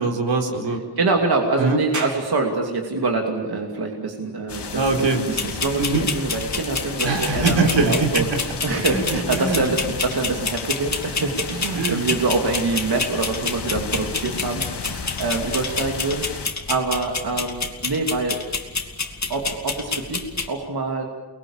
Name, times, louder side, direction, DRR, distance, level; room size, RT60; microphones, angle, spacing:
voice 1, 0.0-0.8 1.6-1.8 4.7-5.2 5.8-6.1 7.0-8.3 8.9-9.6 11.8-12.0, right 3 dB, 85° right, 1 dB, 4.4 m, -22 dB
voice 2, 1.0-4.9 5.2-8.2 8.6-18.4 19.3-21.0, right 3 dB, 60° right, 1 dB, 2.8 m, -25 dB
sound 1, 1.9-15.0, right 2 dB, 40° right, 4.0 m, -44 dB
sound 2, 4.5-16.5, left 5 dB, 70° left, 2.1 m, -33 dB
sound 3, 5.3-20.5, left 4 dB, 40° left, 2.4 m, -29 dB
29.5 x 21.5 x 7.3 m, 1.3 s
wide cardioid pair, 140°, 43 cm